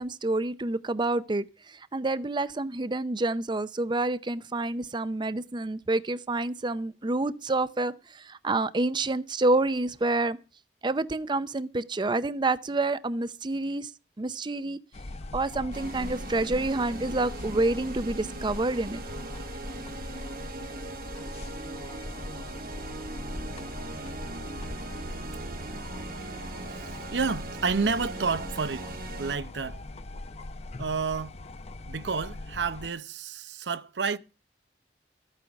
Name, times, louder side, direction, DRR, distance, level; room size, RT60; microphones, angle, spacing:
voice 1, 0.0-10.4 10.8-13.9 14.2-14.8 15.3-19.0, right 2 dB, 25° right, 0.5 m, -28 dB
sound 1, 14.9-32.9, left 2 dB, 40° left, 0.6 m, -40 dB
sound 2, 15.7-29.4, right 3 dB, 55° right, 1.0 m, -40 dB
voice 2, 26.7-28.9 29.2-29.8 30.8-31.3 31.9-34.2, right 5 dB, 85° right, 0.7 m, -30 dB
14.0 x 9.1 x 5.9 m
head